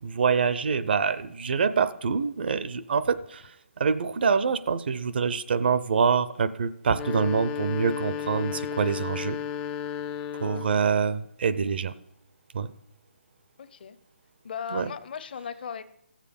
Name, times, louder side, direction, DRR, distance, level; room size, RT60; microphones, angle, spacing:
voice 1, 0.0-3.5 3.8-9.4 10.4-11.9 12.5-12.7 14.7-14.9, right 5 dB, 55° right, 14 dB, 0.6 m, -25 dB
sound 1, 6.8-10.9, left 8 dB, 15° left, 0.4 m, -33 dB
voice 2, 10.5-10.9 13.6-14.0 14.4-15.8, left 7 dB, 50° left, 13 dB, 0.7 m, -37 dB
14.5 x 7.5 x 5.2 m, 0.79 s
hypercardioid pair, 160°, 6 cm